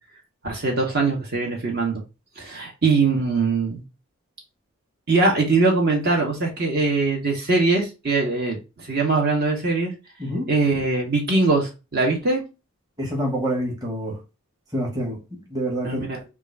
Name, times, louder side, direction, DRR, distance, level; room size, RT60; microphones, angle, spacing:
voice 1, 0.4-2.0 2.4-3.8 5.1-9.9 10.5-12.4 15.8-16.2, right 3 dB, 50° right, 1.2 m, -22 dB
voice 2, 10.2-10.5 13.0-14.2 14.7-15.2 15.5-16.2, equal, 20° right, 1.2 m, -27 dB
3.7 x 2.5 x 4.5 m
head